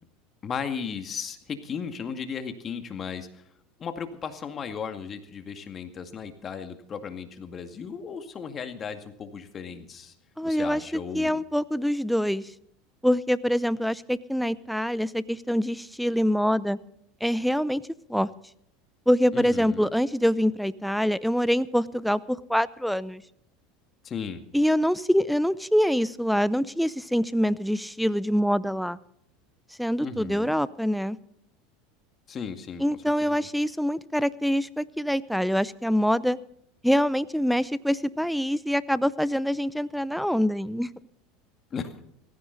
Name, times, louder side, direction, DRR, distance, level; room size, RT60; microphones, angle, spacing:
voice 1, 0.4-3.4 3.8-10.1 10.4-11.4 19.3-19.9 24.0-24.4 30.0-30.5 32.3-32.8 33.2-33.5 41.7-41.9, left 6 dB, 35° left, 8 dB, 2.1 m, -36 dB
voice 2, 10.4-10.8 11.1-12.4 13.0-16.8 17.2-17.8 18.1-18.3 19.1-23.2 24.5-29.0 29.8-31.2 32.8-36.4 36.8-40.9, equal, ahead, 17 dB, 0.7 m, -25 dB
18.0 x 15.5 x 4.1 m, 0.70 s
hypercardioid pair, 95°, 0 cm